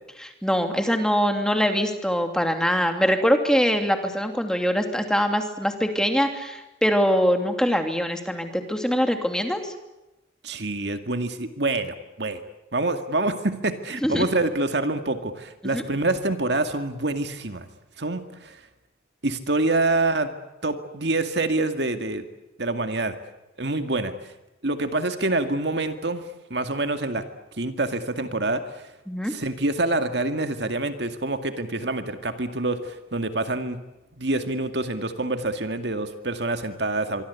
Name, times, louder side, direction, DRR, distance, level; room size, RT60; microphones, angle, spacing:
voice 1, 0.2-9.7 14.0-14.2 15.7-15.8 29.1-29.3, equal, 5° left, 5 dB, 2.7 m, -23 dB
voice 2, 10.4-12.4 12.7-17.7 18.0-18.6 19.2-20.3 20.6-22.3 22.6-23.1 23.6-24.3 24.6-26.2 26.5-27.2 27.6-28.9 29.2-33.8 34.2-37.2, right 2 dB, 65° right, 7 dB, 2.1 m, -26 dB
25.5 x 24.5 x 8.4 m, 0.99 s
head